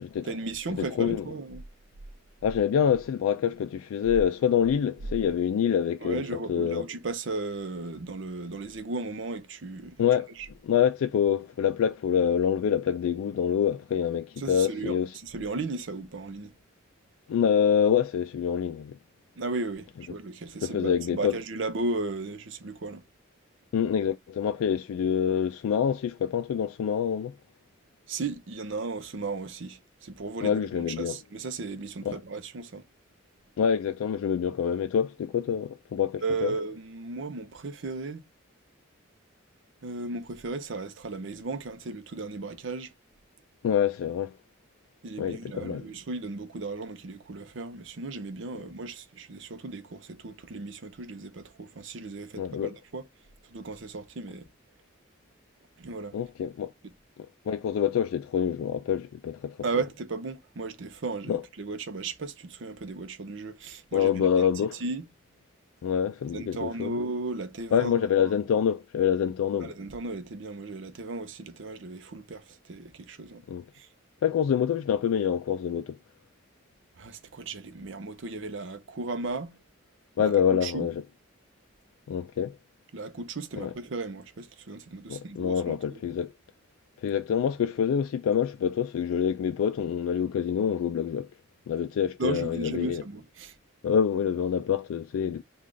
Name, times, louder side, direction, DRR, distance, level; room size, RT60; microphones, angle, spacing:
voice 1, 0.2-1.6 6.0-10.0 10.4-10.5 14.4-16.5 19.4-23.0 28.1-32.8 36.2-38.2 39.8-42.9 45.0-53.1 53.5-54.5 55.8-56.1 59.6-64.5 64.8-65.1 66.3-68.3 69.6-73.4 73.7-73.9 77.0-79.6 80.2-80.4 80.6-80.9 82.9-86.0 92.2-93.5, right 3 dB, 60° right, 0.6 m, -35 dB
voice 2, 0.8-1.3 2.4-6.9 10.0-10.3 10.6-15.1 17.3-19.0 20.6-21.4 23.7-27.4 30.4-31.2 32.1-32.2 33.6-36.5 43.6-44.3 45.2-45.8 52.4-52.7 56.1-56.7 57.5-59.6 61.3-61.4 63.9-64.8 65.8-66.9 67.7-69.7 73.5-73.6 74.2-76.0 80.2-80.9 82.1-82.6 83.6-83.7 85.1-86.3 87.0-91.3 91.7-93.0 93.8-95.4, left 8 dB, 85° left, 0.3 m, -26 dB
3.3 x 2.4 x 3.7 m
head